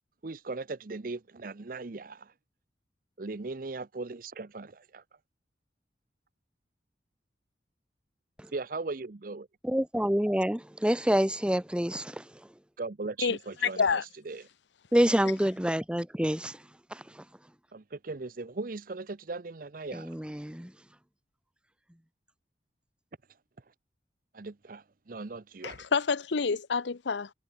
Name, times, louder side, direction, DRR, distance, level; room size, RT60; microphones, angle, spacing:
voice 1, 0.2-2.3 3.2-5.0 8.5-9.5 12.8-14.4 17.7-20.2 24.3-25.9, right 3 dB, 50° right, 0.7 m, -38 dB
voice 2, 9.6-12.3 14.9-16.6 16.9-17.2 19.9-20.7, equal, 5° right, 0.8 m, -27 dB
voice 3, 13.2-14.0 25.6-27.3, left 5 dB, 80° left, 0.7 m, -28 dB
head